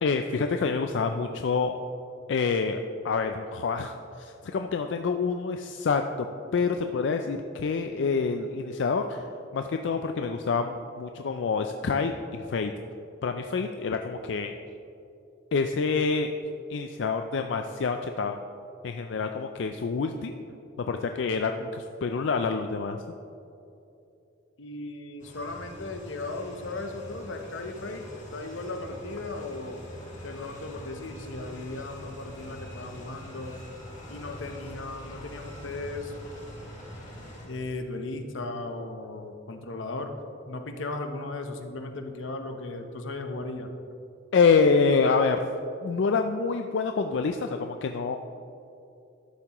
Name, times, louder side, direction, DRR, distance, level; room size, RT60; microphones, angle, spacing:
voice 1, 0.0-1.8 2.3-2.8 3.0-6.3 6.5-12.7 13.2-14.5 15.5-16.3 16.7-18.4 18.8-20.3 20.8-23.0 44.3-45.4 45.8-48.2, left 4 dB, 70° left, 6 dB, 0.4 m, -27 dB
voice 2, 24.6-29.8 30.2-33.6 34.1-36.1 37.4-40.1 40.5-43.7, left 2 dB, 90° left, 6 dB, 0.8 m, -36 dB
sound 1, 25.2-37.5, equal, 40° left, 2.1 m, -44 dB
12.5 x 7.3 x 3.0 m, 2.7 s
head